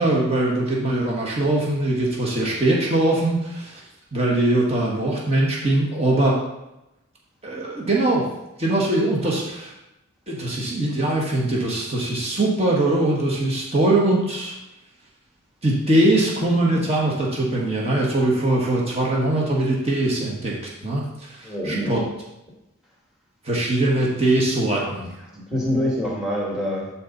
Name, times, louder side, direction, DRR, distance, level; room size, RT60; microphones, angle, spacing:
voice 1, 0.0-3.8 4.1-6.4 7.4-8.2 8.6-9.7 10.3-14.5 15.6-20.6 20.8-22.0 23.4-25.1, right 1 dB, 30° right, -3 dB, 1.6 m, -21 dB
voice 2, 21.4-22.0 24.7-24.9 25.2-26.9, equal, 5° right, -2 dB, 2.1 m, -26 dB
11.5 x 4.3 x 4.1 m, 0.91 s
head